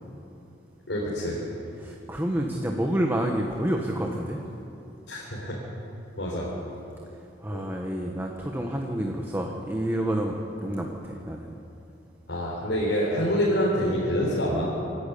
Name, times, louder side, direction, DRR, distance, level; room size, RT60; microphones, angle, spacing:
voice 1, 0.9-1.4 5.1-5.5 6.2-6.5 7.5-7.6 12.3-14.6, equal, 80° left, -5 dB, 4.5 m, -26 dB
voice 2, 1.8-4.4 7.4-11.5, right 1 dB, 15° right, 1 dB, 1.3 m, -29 dB
27.5 x 12.0 x 8.6 m, 2.8 s
head